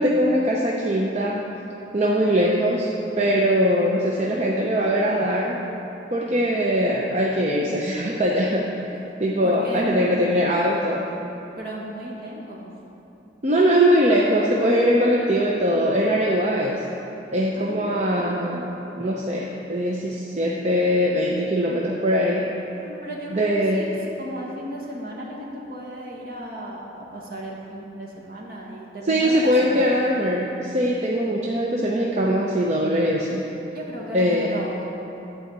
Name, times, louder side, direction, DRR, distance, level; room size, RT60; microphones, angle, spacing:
voice 1, 0.0-1.5 1.9-5.6 6.1-11.1 13.4-16.9 17.3-22.5 23.3-23.8 29.0-33.5 34.1-34.6, equal, 35° right, -2 dB, 0.7 m, -21 dB
voice 2, 9.4-10.5 11.6-12.7 17.5-18.5 22.8-29.9 33.7-34.9, right 1 dB, 55° right, -4 dB, 1.8 m, -35 dB
11.5 x 4.9 x 8.0 m, 3.0 s
head